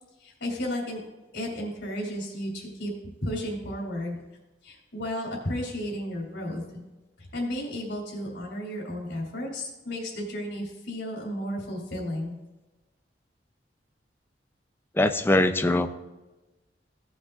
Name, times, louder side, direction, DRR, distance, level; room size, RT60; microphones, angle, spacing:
voice 1, 0.2-1.0 1.3-2.9 3.2-4.2 4.6-6.8 7.2-12.3, equal, 90° left, -3 dB, 3.0 m, -33 dB
voice 2, 15.0-15.9, left 1 dB, 15° left, 9 dB, 0.5 m, -22 dB
16.5 x 8.1 x 2.5 m, 1.1 s
head